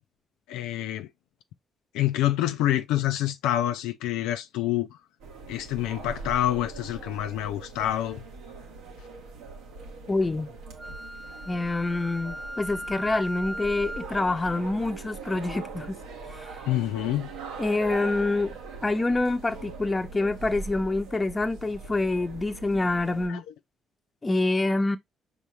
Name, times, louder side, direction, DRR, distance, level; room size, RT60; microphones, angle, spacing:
voice 1, 0.5-1.1 1.9-5.0 5.5-8.2 16.7-17.3 23.3-23.4, left 13 dB, 85° left, 0.4 m, -27 dB
sound 1, 5.2-23.3, right 4 dB, 85° right, 1.1 m, -41 dB
voice 2, 10.1-10.5 11.5-16.0 16.3-16.6 17.6-18.5 18.8-23.4 24.2-25.0, left 2 dB, 30° left, 0.8 m, -26 dB
Wind instrument woodwind instrument, 10.8-14.2, equal, ahead, 0.5 m, -38 dB
5.5 x 3.0 x 3.1 m
supercardioid pair, 55°, 0 cm